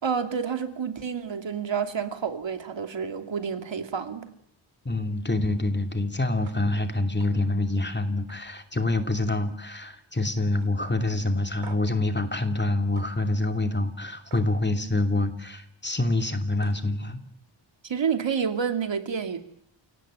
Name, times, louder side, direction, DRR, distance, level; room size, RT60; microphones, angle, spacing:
voice 1, 0.0-4.3 17.8-19.4, right 6 dB, 70° right, 7 dB, 2.7 m, -29 dB
voice 2, 4.8-17.2, left 2 dB, 20° left, 6 dB, 2.7 m, -26 dB
sound 1, 6.4-6.6 7.0-7.3 7.7-7.9 8.3-9.5 9.7-10.2 10.6-10.7 11.6-12.0 12.9-13.1 14.3-14.5 16.2-16.3 16.6-16.9, right 6 dB, 85° right, 2.5 m, -49 dB
29.0 x 18.0 x 9.0 m, 0.71 s
wide cardioid pair, 95°, 47 cm